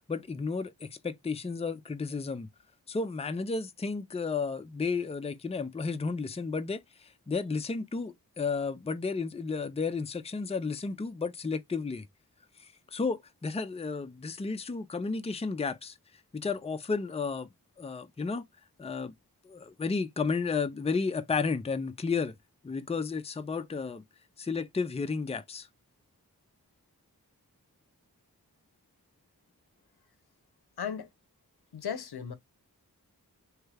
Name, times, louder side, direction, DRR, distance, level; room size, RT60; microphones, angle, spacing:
voice 1, 0.1-2.5 2.9-12.1 12.6-15.9 16.3-17.5 17.8-18.4 18.8-19.1 19.4-22.3 22.6-24.0 24.4-25.7, left 4 dB, 15° left, 0.4 m, -32 dB
voice 2, 30.8-31.1 31.7-32.3, left 7 dB, 80° left, 0.6 m, -35 dB
3.2 x 2.3 x 3.2 m
wide cardioid pair, 40°, 38 cm